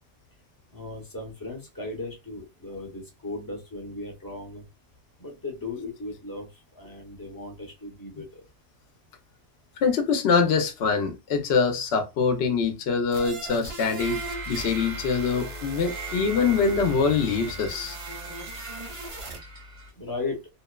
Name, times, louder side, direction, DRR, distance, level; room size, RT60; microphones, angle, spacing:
voice 1, 0.7-4.6 5.2-6.5 6.7-8.5 20.0-20.4, left 2 dB, 25° left, 0.6 m, -36 dB
voice 2, 9.8-14.2 14.5-18.0, left 5 dB, 65° left, 0.8 m, -24 dB
sound 1, 13.1-19.4, right 2 dB, 50° right, 0.4 m, -40 dB
sound 2, 14.0-19.9, right 1 dB, 90° right, 1.3 m, -38 dB
2.8 x 2.1 x 2.2 m
omnidirectional pair, 1.2 m